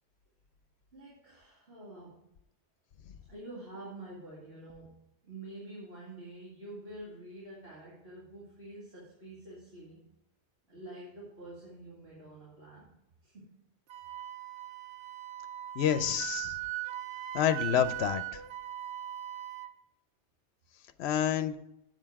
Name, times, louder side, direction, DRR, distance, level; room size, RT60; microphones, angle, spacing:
voice 1, 0.9-2.2 3.3-5.0 5.2-10.0 10.7-12.9 13.2-13.5, right 1 dB, 65° right, -7 dB, 2.6 m, -47 dB
Wind instrument woodwind instrument, 13.9-19.7, right 13 dB, 85° right, 0.9 m, -39 dB
voice 2, 15.8-16.5 17.3-18.2 21.0-21.5, left 9 dB, 70° left, 11 dB, 0.9 m, -28 dB
7.9 x 7.8 x 4.7 m, 0.82 s
omnidirectional pair, 1.2 m